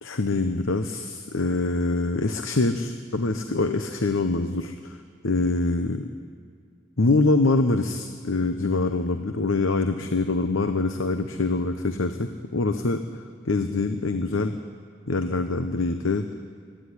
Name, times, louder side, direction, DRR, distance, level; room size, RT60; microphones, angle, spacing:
voice 1, 0.0-5.0 5.2-6.1 7.0-14.6 15.1-16.3, left 3 dB, 75° left, 7 dB, 0.9 m, -24 dB
26.0 x 10.0 x 10.0 m, 2.1 s
head